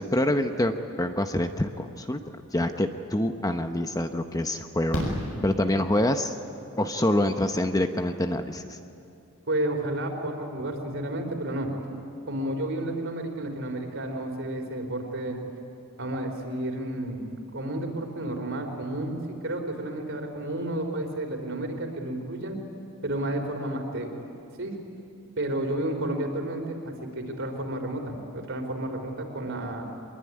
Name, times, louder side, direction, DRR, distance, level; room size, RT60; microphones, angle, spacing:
voice 1, 0.0-2.2 2.5-5.0 5.4-6.4 6.8-8.8, left 1 dB, 15° left, 7 dB, 0.8 m, -26 dB
Fireworks, 4.9-6.2 8.0-8.1 8.3-8.4, equal, 70° left, 7.0 m, -31 dB
voice 2, 9.5-11.7 12.3-15.4 16.0-22.6 23.0-24.1 24.6-24.7 25.4-29.9, right 1 dB, 60° right, 4 dB, 3.9 m, -31 dB
24.5 x 21.5 x 9.7 m, 2.6 s
head